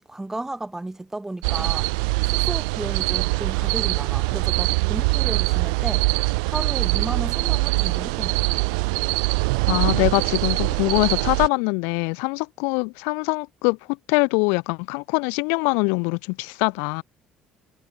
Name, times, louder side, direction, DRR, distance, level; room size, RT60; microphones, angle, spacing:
voice 1, 0.0-1.9 2.2-6.1 6.4-8.6, right 2 dB, 10° right, 1.5 m, -33 dB
sound 1, 1.4-11.5, right 31 dB, 80° right, 0.8 m, -23 dB
voice 2, 9.7-13.8 14.1-17.0, left 35 dB, 80° left, 0.3 m, -23 dB
hypercardioid pair, 65°, 4 cm